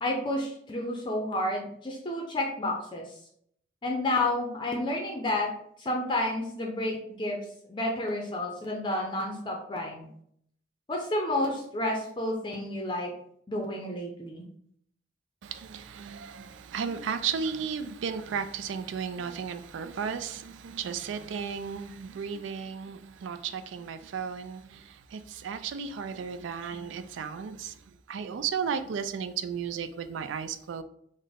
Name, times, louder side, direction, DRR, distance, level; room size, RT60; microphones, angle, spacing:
voice 1, 0.0-3.0 3.8-5.5 5.8-7.4 7.7-10.1 10.9-13.1 13.5-14.5, left 1 dB, 25° left, 0.5 m, -30 dB
voice 2, 15.4-30.8, right 6 dB, 90° right, 0.3 m, -34 dB
3.9 x 2.1 x 3.5 m
head